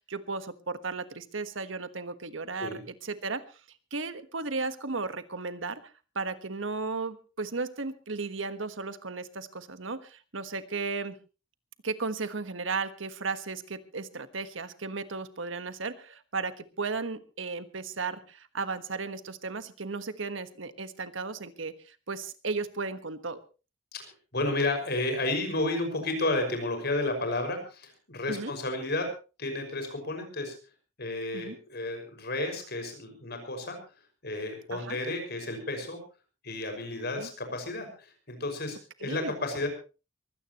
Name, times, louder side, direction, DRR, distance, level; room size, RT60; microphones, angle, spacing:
voice 1, 0.1-3.4 3.9-5.8 6.1-11.1 11.8-23.4 28.3-28.5 31.3-31.6 34.7-35.0 37.2-37.3 39.0-39.3, right 4 dB, 80° right, 11 dB, 1.4 m, -35 dB
voice 2, 23.9-29.1 29.4-30.5 31.0-33.8 34.2-36.0 36.4-39.7, left 2 dB, 60° left, 5 dB, 6.0 m, -32 dB
23.0 x 16.5 x 3.1 m, 0.33 s
head